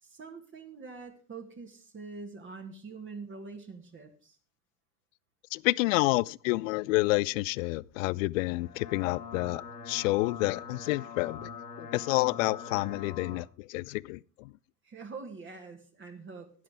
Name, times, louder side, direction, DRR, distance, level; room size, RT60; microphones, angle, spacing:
voice 1, 0.0-4.4 14.8-16.5, right 4 dB, 25° right, 2.0 m, -44 dB
voice 2, 5.5-11.5 11.8-14.5, left 21 dB, 55° left, 0.5 m, -29 dB
sound 1, 8.5-13.4, left 5 dB, 80° left, 2.5 m, -43 dB
11.0 x 10.5 x 4.9 m
hypercardioid pair, 85°, 48 cm